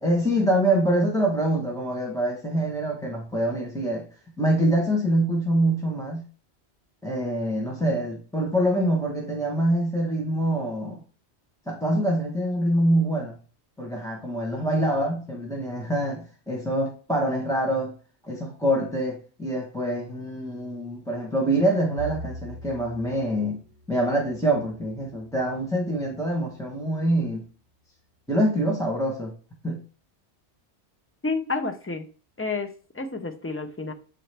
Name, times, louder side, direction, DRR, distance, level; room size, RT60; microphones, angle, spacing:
voice 1, 0.0-4.0 4.4-6.2 7.0-11.0 11.7-13.4 13.8-17.9 18.2-23.6 23.9-27.4 28.3-29.3 29.6-29.8, right 1 dB, 5° left, -2 dB, 0.9 m, -25 dB
Bowed string instrument, 22.0-26.4, right 2 dB, 80° right, 1.0 m, -43 dB
voice 2, 31.2-32.1 32.4-33.9, left 3 dB, 20° left, 7 dB, 0.3 m, -30 dB
7.5 x 3.9 x 3.3 m, 0.39 s
omnidirectional pair, 1.2 m